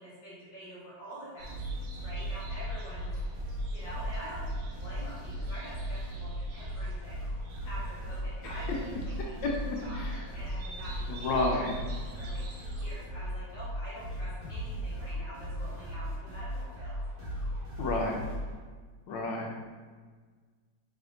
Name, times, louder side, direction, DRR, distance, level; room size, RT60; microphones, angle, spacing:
voice 1, 0.0-3.1 3.7-7.2 7.6-9.5 9.8-11.6 12.2-17.0, equal, 45° left, -8 dB, 1.6 m, -46 dB
sound 1, 1.4-18.6, equal, 50° right, 1.8 m, -37 dB
sound 2, 1.4-12.9, right 2 dB, 70° right, 0.9 m, -43 dB
voice 2, 9.9-10.2 11.1-11.8 17.8-18.2 19.1-19.6, left 2 dB, 75° left, 0 dB, 1.2 m, -31 dB
3.4 x 3.3 x 3.7 m, 1.5 s
omnidirectional pair, 2.2 m